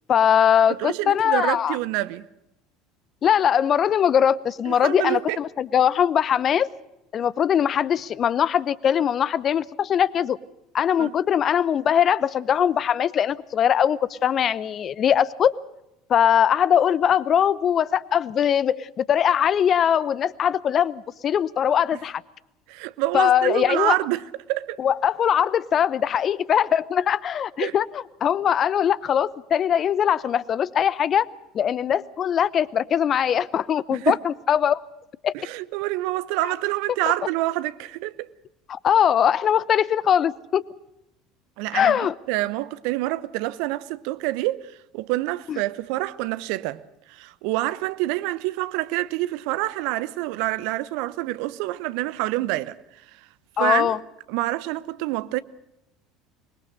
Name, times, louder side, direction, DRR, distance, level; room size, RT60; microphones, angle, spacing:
voice 1, 0.1-1.8 3.2-6.7 7.1-10.4 10.7-15.5 16.1-22.2 23.1-23.9 24.8-31.3 31.5-34.8 35.2-35.3 38.7-40.6 41.7-42.1 45.5-45.6 53.6-54.0, left 9 dB, 40° left, 0.8 m, -21 dB
voice 2, 0.7-2.2 4.7-5.4 11.0-11.1 22.7-24.2 24.5-24.8 27.6-27.7 33.9-34.2 35.3-38.3 41.6-42.0 42.3-46.8 47.1-52.8 53.6-54.0 54.3-55.4, right 18 dB, 60° right, 0.8 m, -27 dB
25.0 x 20.5 x 6.6 m
figure-of-eight pair, 70°, 0 cm